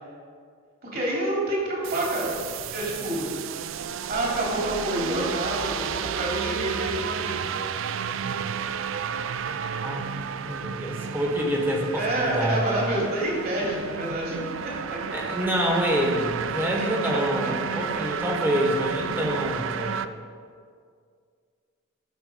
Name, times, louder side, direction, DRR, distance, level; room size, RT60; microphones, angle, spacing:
voice 1, 0.8-2.4 2.7-3.3 4.1-7.4 11.9-15.0 16.8-17.5 17.9-18.0 19.8-20.0, right 1 dB, 45° right, -3 dB, 2.9 m, -28 dB
sound 1, 1.8-20.1, right 7 dB, 65° right, 0.4 m, -32 dB
voice 2, 9.6-12.8 15.1-20.0, equal, 10° right, 0 dB, 1.4 m, -27 dB
13.5 x 6.4 x 5.1 m, 2.2 s
head